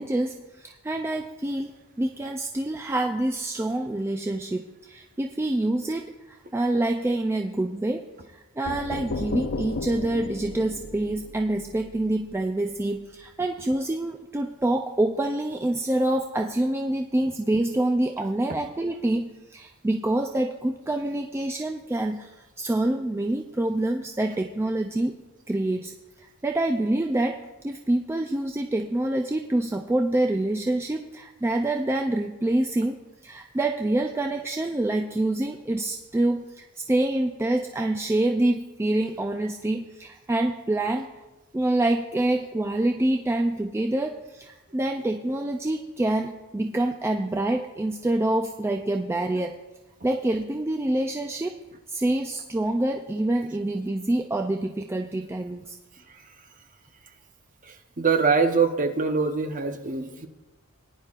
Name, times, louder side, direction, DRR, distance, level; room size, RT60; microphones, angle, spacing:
voice 1, 0.0-8.1 8.3-25.2 25.5-41.1 41.5-49.6 50.0-51.6 51.9-55.8, right 1 dB, 10° right, 3 dB, 0.3 m, -26 dB
sound 1, 8.7-12.4, left 2 dB, 60° left, 0.5 m, -34 dB
voice 2, 58.0-60.3, right 5 dB, 35° right, 6 dB, 0.8 m, -23 dB
19.0 x 10.0 x 2.5 m, 1.1 s
head